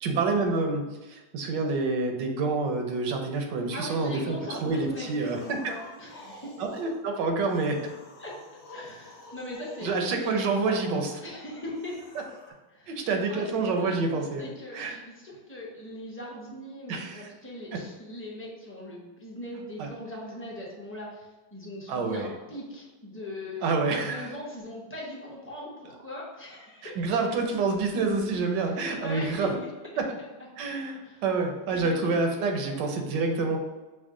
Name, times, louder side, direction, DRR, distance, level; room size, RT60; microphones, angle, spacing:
voice 1, 0.0-5.7 6.6-7.8 9.8-11.1 12.9-15.0 16.9-17.3 17.7-17.8 19.8-19.9 21.9-22.3 23.6-24.3 26.8-29.6 30.0-30.1 30.6-33.6, right 3 dB, 85° right, 3 dB, 1.4 m, -28 dB
voice 2, 3.7-6.6 8.2-8.3 8.7-12.0 12.7-23.7 24.1-27.2 28.6-29.5 30.2-30.3 31.0-31.2 31.7-32.1, left 1 dB, 15° left, -5 dB, 0.5 m, -40 dB
sound 1, 4.5-7.0 7.4-10.1 11.7-12.5, left 2 dB, 55° left, 1.2 m, -49 dB
6.2 x 2.1 x 3.6 m, 1.2 s
omnidirectional pair, 1.9 m